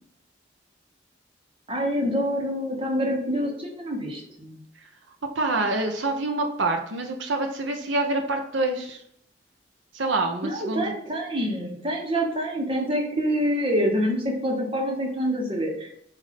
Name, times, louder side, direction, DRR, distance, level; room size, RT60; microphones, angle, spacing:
voice 1, 1.7-4.6 10.4-15.9, equal, 30° right, 0 dB, 1.1 m, -26 dB
voice 2, 5.3-9.0 9.9-10.9, right 2 dB, 75° right, 3 dB, 0.8 m, -26 dB
7.4 x 2.7 x 5.1 m, 0.71 s
head